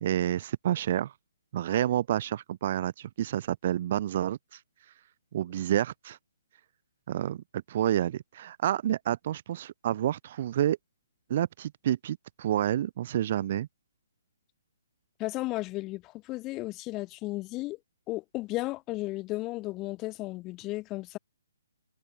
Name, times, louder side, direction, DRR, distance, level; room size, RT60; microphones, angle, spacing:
voice 1, 0.0-1.1 1.5-4.6 5.3-6.2 7.1-10.8 11.3-13.7, right 11 dB, 45° right, 1.0 m, -29 dB
voice 2, 15.2-17.8 18.1-21.2, left 19 dB, 25° left, 1.1 m, -34 dB
figure-of-eight pair, 140°, 0 cm